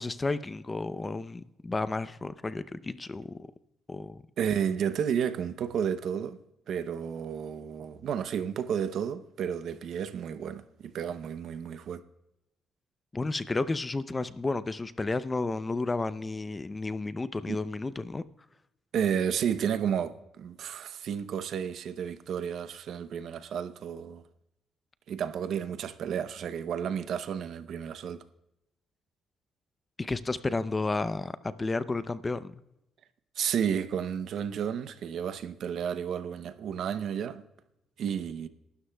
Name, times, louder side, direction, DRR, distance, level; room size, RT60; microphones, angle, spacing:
voice 1, 0.0-3.4 3.9-4.2 13.1-18.2 30.0-32.6, left 3 dB, 25° left, 0.6 m, -32 dB
voice 2, 4.4-6.4 6.7-12.0 17.5-17.6 18.9-24.2 25.1-28.2 33.4-37.4 38.0-38.5, right 8 dB, 70° right, 0.7 m, -32 dB
23.0 x 12.5 x 2.3 m
cardioid pair, 90°, 0 cm